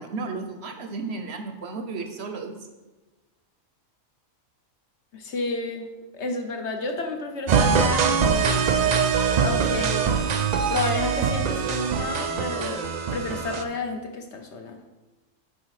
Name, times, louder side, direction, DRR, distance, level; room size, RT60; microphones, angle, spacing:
voice 1, 0.0-2.6, right 4 dB, 60° right, 6 dB, 0.9 m, -33 dB
voice 2, 5.1-5.9 6.1-8.9 9.4-10.1 10.7-14.8, left 3 dB, 60° left, 4 dB, 1.1 m, -31 dB
sound 1, 7.5-13.6, right 6 dB, 85° right, 0.3 m, -23 dB
7.5 x 4.9 x 4.8 m, 1.2 s
omnidirectional pair, 1.4 m